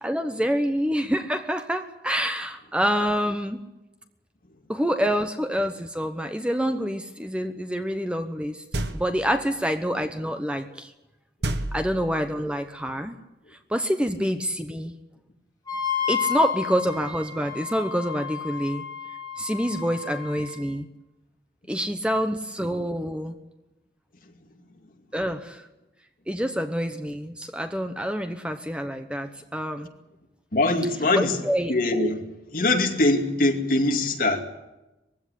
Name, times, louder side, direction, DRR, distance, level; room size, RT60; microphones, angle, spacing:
voice 1, 0.0-3.6 4.7-8.6 8.9-10.9 11.7-13.2 13.7-14.9 16.1-18.8 19.4-20.9 21.7-23.3 25.1-25.6 26.3-29.9 31.1-31.7, equal, 5° right, 1.0 m, -27 dB
sound 1, 8.7-9.4 11.4-12.4, right 1 dB, 70° right, 1.5 m, -30 dB
Wind instrument woodwind instrument, 15.7-20.6, left 8 dB, 20° left, 4.4 m, -32 dB
voice 2, 30.5-31.4 31.7-32.2 32.5-34.4, left 2 dB, 50° left, 2.5 m, -22 dB
21.0 x 16.0 x 10.0 m
head